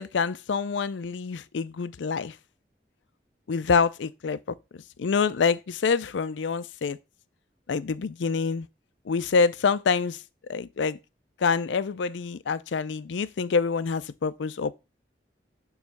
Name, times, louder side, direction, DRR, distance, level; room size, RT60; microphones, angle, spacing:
voice 1, 0.0-2.4 3.5-4.4 5.0-7.0 7.7-8.7 9.1-10.2 10.5-11.0 11.4-14.7, left 5 dB, 90° left, 0.5 m, -26 dB
7.1 x 3.1 x 5.8 m
head